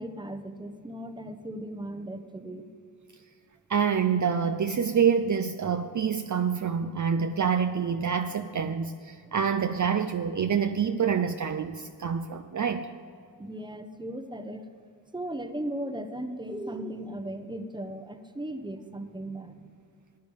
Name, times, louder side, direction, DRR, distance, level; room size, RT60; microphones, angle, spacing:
voice 1, 0.0-2.7 9.2-9.3 13.4-14.6 15.1-19.8, right 1 dB, 10° right, 8 dB, 1.0 m, -37 dB
voice 2, 3.7-12.9, right 7 dB, 45° right, 8 dB, 0.6 m, -27 dB
14.0 x 9.7 x 5.5 m, 2.3 s
cardioid pair, 60°, 42 cm